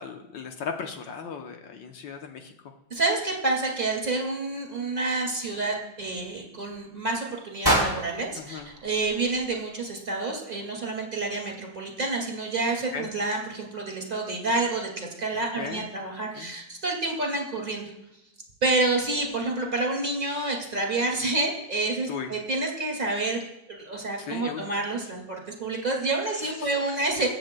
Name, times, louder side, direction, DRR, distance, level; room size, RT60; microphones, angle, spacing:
voice 1, 0.0-2.5 8.4-8.7 12.9-13.1 15.6-15.9 16.3-16.5 22.1-22.3 24.2-24.7 26.4-26.9, left 6 dB, 70° left, 4 dB, 1.5 m, -37 dB
voice 2, 2.9-17.8 18.6-23.4 23.7-27.3, right 2 dB, 25° right, 0 dB, 2.2 m, -28 dB
sound 1, 7.6-9.8, right 1 dB, 10° left, 3.0 m, -28 dB
22.5 x 7.9 x 2.2 m, 0.86 s
omnidirectional pair, 2.1 m